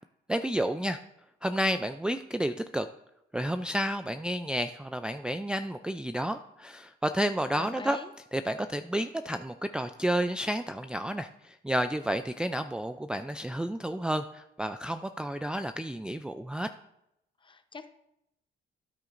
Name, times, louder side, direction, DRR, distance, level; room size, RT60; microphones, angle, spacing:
voice 1, 0.3-1.0 1.4-2.9 3.3-8.0 8.3-16.7, right 1 dB, 5° right, 7 dB, 0.4 m, -31 dB
voice 2, 7.6-8.1 17.4-17.9, left 4 dB, 25° left, 9 dB, 0.8 m, -43 dB
13.5 x 9.5 x 2.6 m, 0.83 s
cardioid pair, 90°, 20 cm